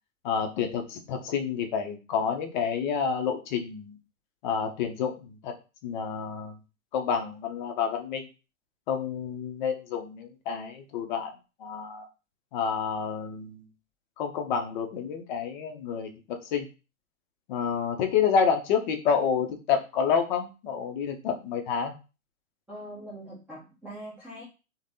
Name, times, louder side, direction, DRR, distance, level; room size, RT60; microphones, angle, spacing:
voice 1, 0.2-4.0 4.4-5.5 5.8-6.5 6.9-8.3 8.9-11.3 11.6-12.1 12.5-13.7 14.2-16.1 16.5-16.7 17.5-21.9, left 6 dB, 35° left, 4 dB, 0.6 m, -29 dB
voice 2, 22.7-24.4, right 1 dB, 5° right, -8 dB, 0.7 m, -42 dB
3.2 x 2.1 x 2.6 m, 0.32 s
hypercardioid pair, 115°, 40 cm